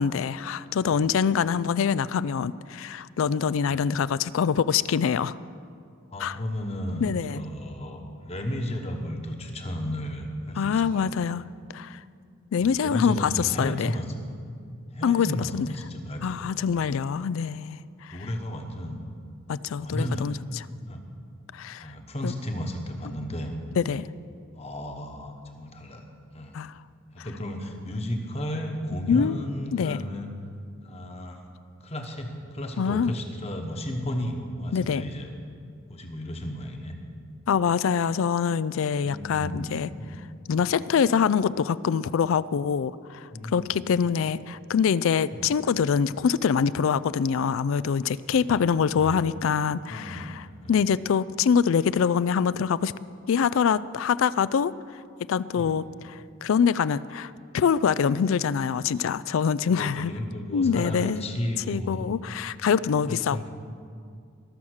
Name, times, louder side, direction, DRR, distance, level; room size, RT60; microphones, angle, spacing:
voice 1, 0.0-5.4 6.2-6.4 7.0-7.4 10.6-11.4 11.7-12.0 12.5-13.9 15.0-15.7 16.2-18.2 19.5-20.3 21.5-21.9 22.2-22.3 23.8-24.1 26.5-26.7 27.2-27.3 29.1-29.4 29.7-30.0 32.8-33.1 34.7-35.0 37.5-39.9 40.5-52.9 53.3-54.7 55.3-60.1 60.5-61.2 61.7-63.5, left 7 dB, 70° left, 18 dB, 0.3 m, -25 dB
voice 2, 6.1-11.4 12.6-14.1 14.9-16.9 18.1-19.0 19.8-20.4 20.9-21.0 21.8-23.5 24.6-26.1 26.3-26.6 27.1-30.3 30.8-31.4 31.8-35.3 35.9-36.9 39.0-40.2 43.3-44.0 45.3-45.5 48.2-48.6 48.9-49.2 49.9-50.4 50.6-50.8 55.5-55.8 59.6-62.1 63.1-63.5, equal, 30° left, 4 dB, 1.2 m, -34 dB
21.0 x 7.2 x 6.4 m, 2.3 s
head